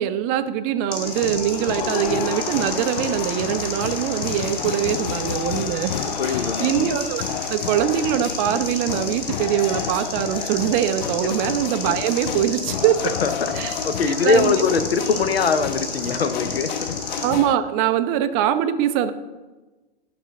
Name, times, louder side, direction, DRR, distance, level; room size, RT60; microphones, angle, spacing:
voice 1, 0.0-5.9 6.2-13.0 13.5-13.8 14.1-14.6 17.2-19.1, right 10 dB, 25° right, 10 dB, 0.4 m, -23 dB
sound 1, 0.9-17.3, left 3 dB, 30° left, 1.8 m, -32 dB
sound 2, 1.0-17.6, left 9 dB, 50° left, 0.4 m, -31 dB
voice 2, 6.2-6.8 11.2-11.3 13.0-13.5 13.8-16.9, left 5 dB, 75° left, 11 dB, 0.8 m, -22 dB
11.0 x 5.6 x 3.6 m, 1.2 s
figure-of-eight pair, 105°, 30 cm